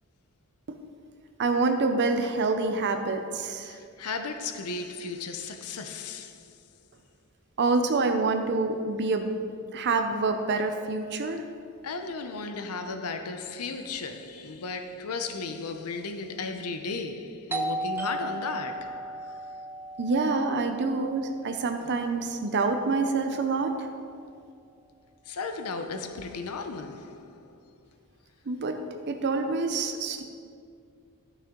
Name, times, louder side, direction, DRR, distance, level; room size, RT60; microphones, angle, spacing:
voice 1, 1.4-3.8 7.6-9.3 9.7-11.4 20.0-23.9 28.5-30.2, right 3 dB, 50° right, 0.6 m, -27 dB
voice 2, 3.6-6.7 11.8-19.6 25.3-27.7, left 4 dB, 80° left, 0.6 m, -35 dB
Doorbell, 17.5-22.9, right 1 dB, 10° right, 0.5 m, -36 dB
12.5 x 6.5 x 3.7 m
head